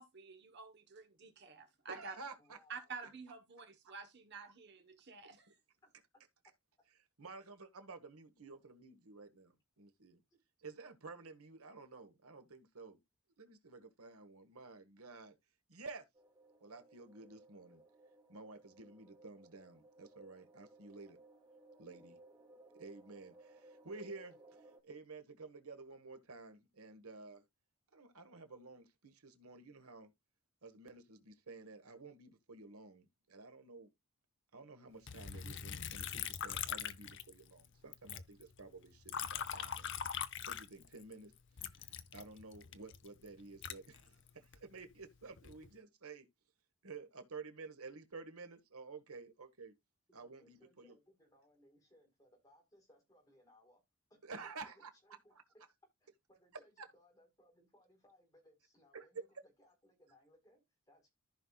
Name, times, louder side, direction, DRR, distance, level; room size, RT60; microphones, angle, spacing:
voice 1, 0.0-2.1 2.7-5.6, right 5 dB, 50° right, 1.2 m, -50 dB
voice 2, 1.9-2.6 4.4-4.5 7.2-10.2 10.6-13.0 13.4-15.3 15.7-16.0 16.6-17.8 18.3-21.2 21.8-22.2 22.7-27.4 27.9-30.1 30.6-33.9 34.5-40.0 40.5-41.3 42.1-46.3 46.8-49.7 50.1-50.9 54.2-54.9 58.9-59.1, right 3 dB, 80° right, 1.5 m, -52 dB
voice 3, 2.4-2.9 5.8-5.9 10.3-10.4 50.2-53.8 54.1-55.6 56.0-61.1, left 1 dB, 15° left, 4.4 m, -67 dB
sound 1, 16.1-24.8, right 1 dB, 25° right, 2.7 m, -62 dB
Liquid, 35.1-37.7 37.9-41.1 41.6-44.6 45.2-45.7, left 8 dB, 55° left, 0.7 m, -42 dB
14.5 x 5.5 x 2.4 m
head